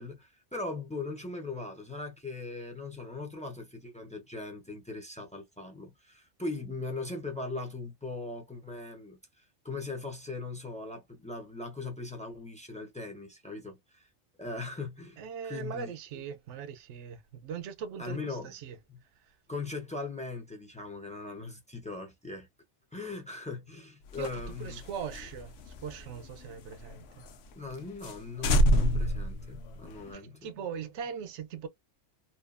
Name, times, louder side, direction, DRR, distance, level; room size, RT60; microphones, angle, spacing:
voice 1, 0.0-14.1 14.4-15.9 18.0-18.5 18.9-19.0 19.5-22.5 22.9-24.8 27.6-30.5, left 3 dB, 10° left, 0.3 m, -39 dB
voice 2, 15.2-18.8 19.2-19.4 24.2-27.3 30.1-31.7, right 7 dB, 75° right, 0.9 m, -40 dB
sound 1, 24.1-26.9 27.3-27.4 27.7-27.8 28.0-28.2 28.4-30.1, equal, 65° left, 0.8 m, -28 dB
2.7 x 2.3 x 2.3 m
omnidirectional pair, 1.2 m